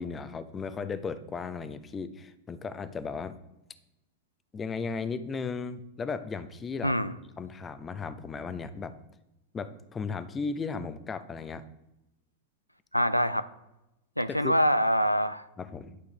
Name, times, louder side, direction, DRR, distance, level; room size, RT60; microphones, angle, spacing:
voice 1, 0.0-3.3 4.5-6.9 7.4-8.9 9.5-11.7 14.3-14.5 15.6-16.0, left 5 dB, 20° left, 12 dB, 0.7 m, -35 dB
voice 2, 6.8-7.1 12.9-13.5 14.2-15.5, equal, 90° left, 12 dB, 0.4 m, -25 dB
11.5 x 6.4 x 3.4 m, 0.93 s
figure-of-eight pair, 90°, 0 cm